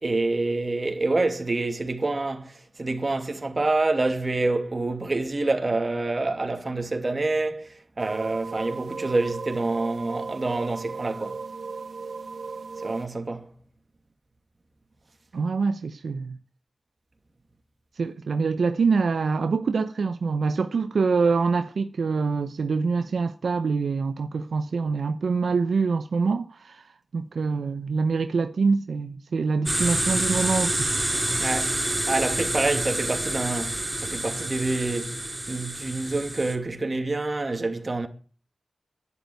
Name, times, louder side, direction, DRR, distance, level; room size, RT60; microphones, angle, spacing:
voice 1, 0.0-11.4 12.8-13.5 31.4-35.2 35.5-38.1, right 2 dB, 40° right, 2.7 m, -27 dB
sound 1, 8.0-13.1, right 4 dB, 70° right, 1.8 m, -36 dB
voice 2, 15.3-16.4 18.0-30.9, right 4 dB, 85° right, 0.8 m, -25 dB
sound 2, 29.7-36.6, right 1 dB, 20° right, 3.1 m, -28 dB
11.5 x 11.0 x 9.3 m
cardioid pair, 60°, 0 cm